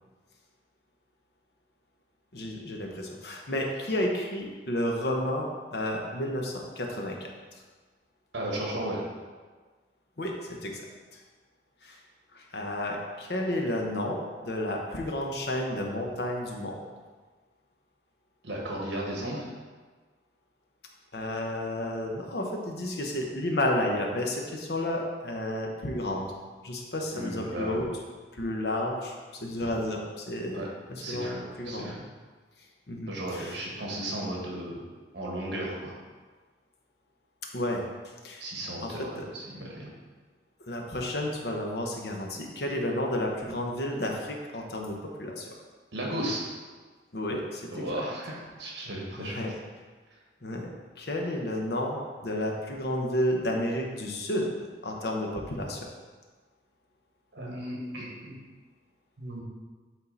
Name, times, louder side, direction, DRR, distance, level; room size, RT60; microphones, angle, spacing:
voice 1, 2.3-7.3 10.2-10.9 11.1-11.2 11.8-12.0 12.3-16.8 21.1-26.3 26.6-27.9 28.3-29.1 29.4-30.6 30.9-32.0 32.9-33.6 37.5-37.8 38.2-38.4 38.8-39.3 40.6-45.5 47.1-48.0 49.2-49.5 50.4-50.7 51.0-55.9, left 1 dB, 60° left, 0 dB, 1.0 m, -31 dB
voice 2, 8.3-9.0 18.4-19.5 27.1-27.8 30.5-30.7 31.0-31.4 31.6-32.0 33.1-34.8 35.1-35.9 38.4-39.9 45.9-46.4 47.7-49.4 57.3-58.3 59.2-59.4, right 1 dB, 65° right, -3 dB, 1.6 m, -35 dB
8.3 x 3.7 x 4.0 m, 1.4 s
head